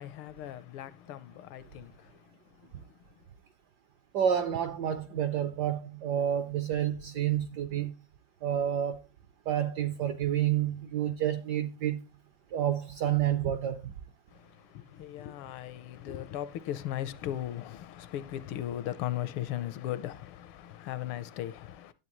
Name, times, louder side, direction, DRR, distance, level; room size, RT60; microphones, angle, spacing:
voice 1, 0.0-3.0 14.3-21.9, left 12 dB, 80° left, 1.5 m, -38 dB
voice 2, 4.1-7.9 8.4-9.0 9.5-12.0 12.5-13.9, right 10 dB, 70° right, 1.0 m, -29 dB
11.0 x 8.1 x 3.0 m
omnidirectional pair, 2.4 m